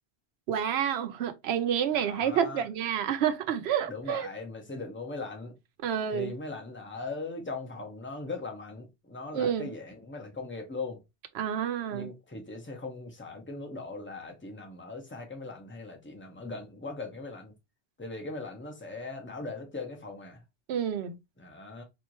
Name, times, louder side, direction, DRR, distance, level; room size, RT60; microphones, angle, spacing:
voice 1, 0.5-4.3 5.8-6.3 9.3-9.7 11.3-12.1 20.7-21.2, right 9 dB, 75° right, 0.9 m, -29 dB
voice 2, 1.9-2.7 3.9-5.5 6.1-11.0 11.9-17.5 18.0-20.4 21.4-21.8, left 3 dB, 10° left, 0.8 m, -39 dB
4.4 x 2.5 x 2.9 m
omnidirectional pair, 1.1 m